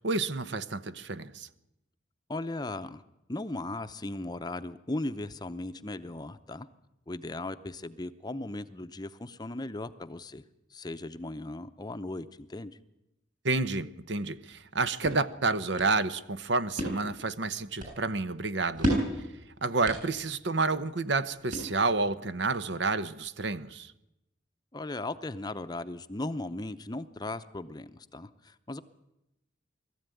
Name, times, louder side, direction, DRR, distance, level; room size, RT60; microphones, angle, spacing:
voice 1, 0.0-1.5 13.4-18.9 19.6-23.9, right 3 dB, 65° right, 0.9 m, -29 dB
voice 2, 2.3-3.0 3.3-6.7 7.1-10.4 10.7-12.8 24.7-28.8, left 2 dB, 20° left, 0.7 m, -37 dB
sound 1, 14.5-22.1, equal, 45° right, 7.7 m, -36 dB
21.5 x 14.0 x 9.3 m
head